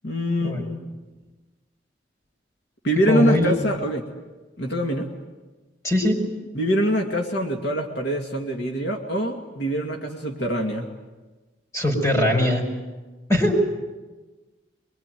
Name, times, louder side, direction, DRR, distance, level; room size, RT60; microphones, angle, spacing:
voice 1, 0.0-0.8 2.8-4.1 4.6-5.1 6.5-10.9, equal, 65° left, 2 dB, 2.3 m, -24 dB
voice 2, 3.1-3.5 5.8-6.2 11.7-12.6 13.3-13.5, left 1 dB, 15° left, 3 dB, 5.7 m, -20 dB
24.0 x 23.5 x 9.3 m, 1.2 s
head